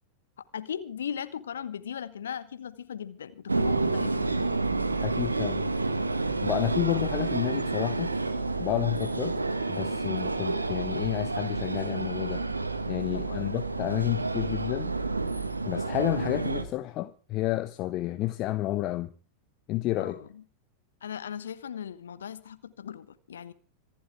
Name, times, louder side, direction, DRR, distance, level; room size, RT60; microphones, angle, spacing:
voice 1, 0.5-4.1 13.1-13.5 20.0-20.4 21.0-23.5, left 8 dB, 65° left, 1.1 m, -38 dB
sound 1, 3.5-16.6, right 3 dB, 80° right, 1.7 m, -29 dB
voice 2, 5.0-5.7 6.4-8.1 8.6-9.4 9.7-12.4 12.9-14.9 15.6-19.1 19.7-20.2, left 16 dB, 35° left, 0.9 m, -30 dB
26.0 x 12.0 x 3.5 m
figure-of-eight pair, 90°, 0 cm